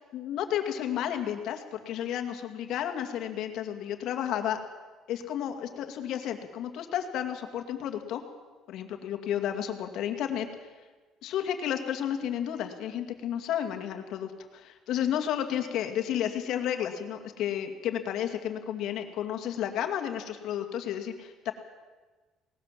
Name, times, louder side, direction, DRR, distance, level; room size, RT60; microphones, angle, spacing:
voice 1, 0.1-4.6 5.1-8.2 8.7-10.5 11.2-21.5, left 10 dB, 65° left, 5 dB, 2.3 m, -32 dB
19.0 x 19.0 x 7.6 m, 1.3 s
cardioid pair, 140°, 0 cm